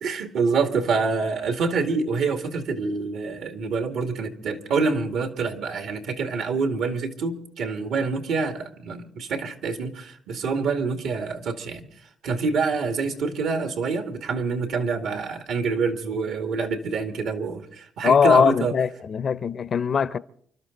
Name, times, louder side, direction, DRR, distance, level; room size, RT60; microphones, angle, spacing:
voice 1, 0.0-11.9 12.2-18.7, right 4 dB, 80° right, 2.2 m, -26 dB
voice 2, 18.0-20.2, left 6 dB, 50° left, 0.6 m, -20 dB
29.0 x 12.5 x 4.0 m
cardioid pair, 90°, 0 cm